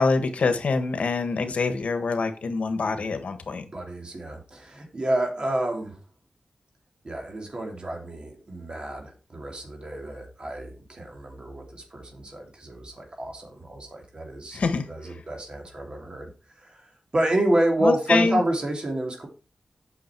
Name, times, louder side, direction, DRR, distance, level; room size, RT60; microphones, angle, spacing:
voice 1, 0.0-3.6 14.5-14.9 17.8-18.4, left 4 dB, 85° left, 8 dB, 1.3 m, -25 dB
voice 2, 3.7-6.0 7.0-14.6 14.9-16.3 17.1-19.3, right 1 dB, 45° right, 2 dB, 2.9 m, -29 dB
8.6 x 6.3 x 4.5 m, 0.33 s
wide cardioid pair, 85°, 2 cm